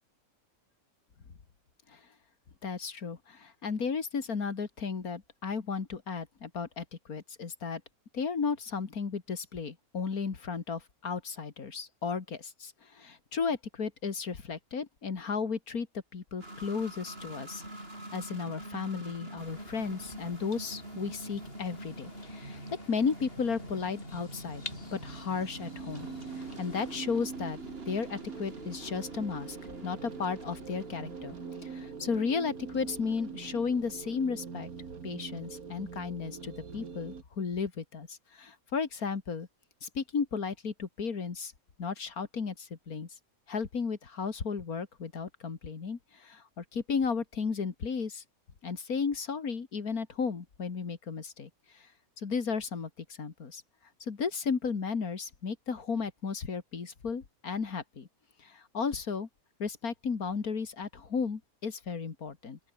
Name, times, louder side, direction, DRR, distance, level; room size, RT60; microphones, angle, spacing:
voice 1, 2.6-7.8 8.1-15.9 16.1-17.6 18.1-22.6 22.9-24.6 24.9-26.1 26.3-27.6 27.9-31.4 31.6-34.7 35.0-39.5 39.8-41.5 41.8-43.1 43.5-48.2 48.6-51.9 52.2-53.6 54.0-58.1 58.4-59.3 59.6-62.6, left 5 dB, 85° left, 2.6 m, -34 dB
sound 1, 16.4-34.9, right 1 dB, 40° right, 8.2 m, -46 dB
sound 2, 19.4-27.0, left 3 dB, 40° left, 2.5 m, -50 dB
sound 3, 24.4-37.2, right 5 dB, 75° right, 2.5 m, -44 dB
open air
omnidirectional pair, 1.5 m